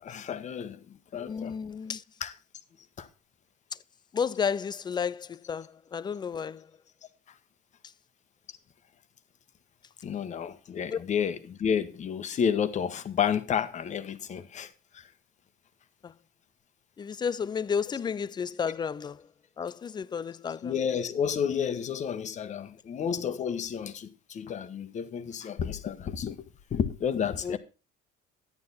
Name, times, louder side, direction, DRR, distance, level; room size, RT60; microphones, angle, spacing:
voice 1, 0.0-1.6 2.2-2.3 3.0-3.1 10.0-15.0 20.6-26.4 26.7-27.6, left 7 dB, 40° left, 1.1 m, -31 dB
voice 2, 1.2-2.0 4.1-6.6 10.9-11.0 17.0-19.2 19.6-20.7 27.4-27.6, left 6 dB, 25° left, 0.4 m, -32 dB
10.5 x 9.4 x 4.1 m
supercardioid pair, 105°, 18 cm